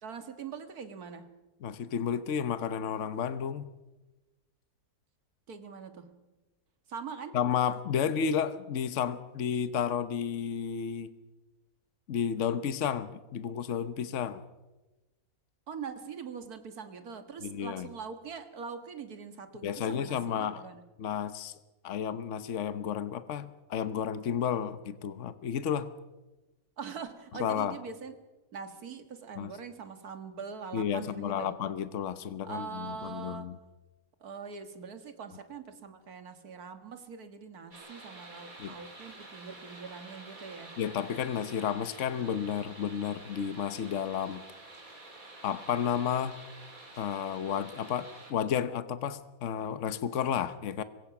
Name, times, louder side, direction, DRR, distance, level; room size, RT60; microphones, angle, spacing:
voice 1, 0.0-1.4 5.5-6.3 6.9-7.4 7.9-8.1 15.7-20.8 26.8-28.2 28.5-31.5 32.4-33.5 34.2-40.8, right 6 dB, 90° right, 9 dB, 2.1 m, -43 dB
voice 2, 1.6-3.7 7.3-11.1 12.1-14.4 17.4-17.9 19.6-20.6 21.0-21.5 21.8-25.9 27.4-27.7 29.4-29.5 30.7-33.5 38.6-38.8 40.8-44.4 45.4-46.3 47.0-50.8, left 8 dB, 60° left, 12 dB, 1.2 m, -32 dB
sound 1, 37.7-48.3, right 2 dB, 65° right, 4.0 m, -49 dB
26.0 x 23.0 x 6.0 m, 1.1 s
omnidirectional pair, 1.6 m